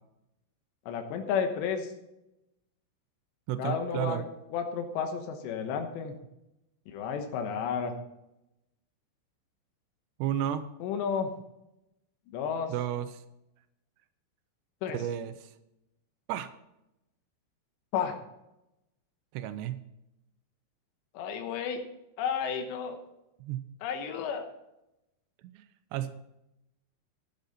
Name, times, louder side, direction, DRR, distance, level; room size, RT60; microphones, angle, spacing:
voice 1, 0.9-1.9 3.6-4.2 4.5-6.2 6.9-7.9 10.8-11.3 12.3-12.7 14.8-15.0 17.9-18.2 21.1-21.8 22.2-23.0 23.8-24.4, left 7 dB, 90° left, 5 dB, 3.4 m, -32 dB
voice 2, 3.5-4.2 10.2-10.7 12.7-13.2 14.9-15.5 16.3-16.5 19.3-19.8 23.4-23.7 25.4-25.7 25.9-26.1, right 11 dB, 85° right, 11 dB, 2.8 m, -32 dB
12.0 x 10.5 x 4.2 m, 0.89 s
omnidirectional pair, 5.0 m